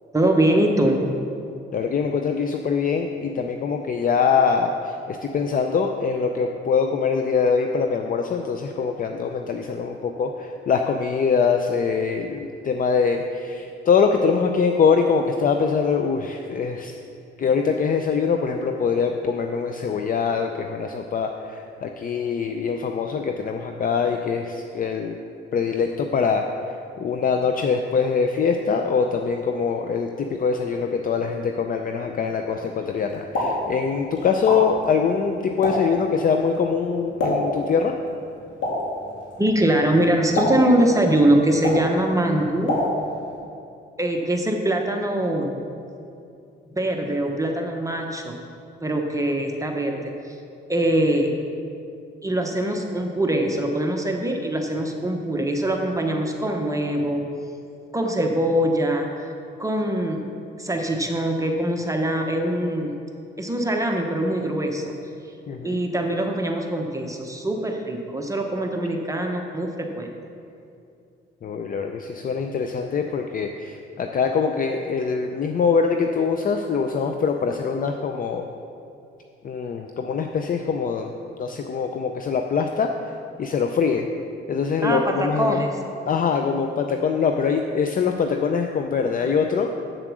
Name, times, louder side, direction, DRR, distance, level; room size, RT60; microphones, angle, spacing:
voice 1, 0.1-1.1 39.4-42.8 44.0-45.5 46.7-48.4 48.8-50.4 50.7-51.3 52.2-57.3 57.9-59.3 59.6-60.3 60.6-62.9 63.4-64.9 65.6-70.1 84.8-85.8, right 1 dB, 15° right, 2 dB, 1.0 m, -23 dB
voice 2, 1.7-16.9 17.4-25.2 25.5-26.4 27.0-38.0 65.5-65.8 71.4-78.5 79.4-81.1 81.4-82.9 83.4-84.1 84.5-85.6 86.1-89.7, left 5 dB, 45° left, 4 dB, 0.6 m, -23 dB
Explosion, 33.1-43.4, left 1 dB, 75° left, 2.7 m, -29 dB
8.1 x 7.4 x 6.2 m, 2.5 s
cardioid pair, 90°, 20 cm